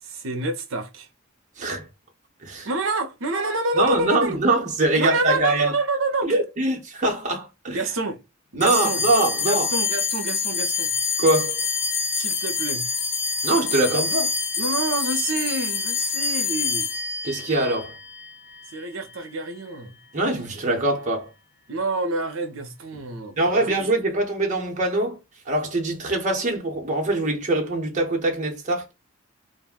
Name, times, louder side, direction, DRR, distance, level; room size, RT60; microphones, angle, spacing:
voice 1, 0.0-1.1 2.6-4.4 4.9-6.3 7.7-8.2 8.5-9.0 9.4-10.9 12.1-12.8 14.6-16.9 18.7-19.9 21.7-23.7, right 2 dB, 70° right, 0.6 m, -27 dB
voice 2, 1.6-1.9 2.4-2.7 3.8-5.7 6.2-7.8 8.6-9.7 11.2-11.6 13.4-14.3 17.2-18.0 20.1-21.3 23.4-25.2 25.5-28.9, right 2 dB, 35° right, 0.7 m, -23 dB
sound 1, 8.6-19.3, left 5 dB, 55° left, 0.6 m, -26 dB
2.4 x 2.1 x 3.5 m
head